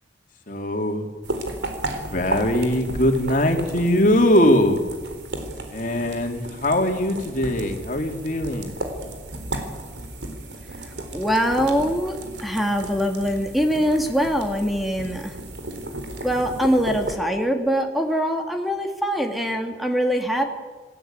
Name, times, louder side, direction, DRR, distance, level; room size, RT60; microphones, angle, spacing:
voice 1, 0.5-1.1 1.9-4.8 5.7-8.8, left 1 dB, 45° left, 4 dB, 3.2 m, -21 dB
sound 1, 1.2-17.2, right 1 dB, 75° right, 3.9 m, -34 dB
voice 2, 11.1-15.3 16.2-20.5, equal, ahead, 3 dB, 2.3 m, -23 dB
27.0 x 17.0 x 9.0 m, 1.4 s
head